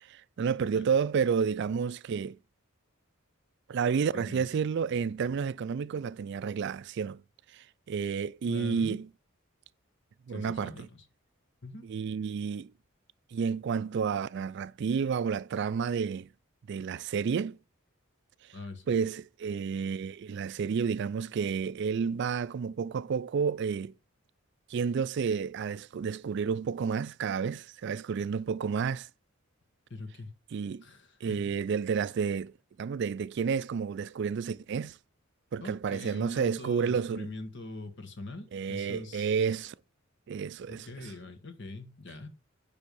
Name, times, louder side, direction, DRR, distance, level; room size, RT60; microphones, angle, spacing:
voice 1, 0.0-2.4 3.7-7.2 7.5-9.1 10.3-10.9 11.8-12.7 13.3-16.3 16.7-17.6 18.9-23.9 24.7-29.1 30.5-30.8 31.2-32.5 32.8-35.0 35.5-37.3 38.5-39.7 40.3-40.9, right 6 dB, 60° right, 0.3 m, -30 dB
voice 2, 4.1-4.4 8.4-9.0 10.3-11.0 11.6-11.8 18.5-19.0 29.9-30.3 30.8-31.6 35.6-39.6 40.7-42.3, left 2 dB, 60° left, 1.5 m, -43 dB
9.9 x 3.6 x 6.8 m
head